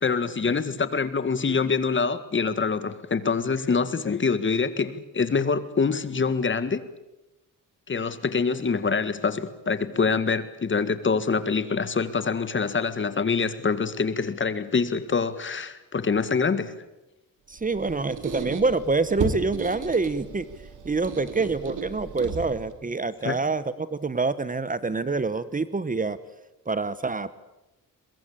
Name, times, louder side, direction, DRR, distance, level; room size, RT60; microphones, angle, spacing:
voice 1, 0.0-6.8 7.9-16.7 23.2-23.4, left 5 dB, 35° left, 12 dB, 1.9 m, -25 dB
voice 2, 17.5-20.5 20.8-26.2 26.7-27.4, right 3 dB, 25° right, 15 dB, 1.1 m, -26 dB
Squeak, 17.5-22.8, right 4 dB, 65° right, 3.7 m, -35 dB
23.5 x 22.0 x 8.8 m, 0.95 s
cardioid pair, 100°, 33 cm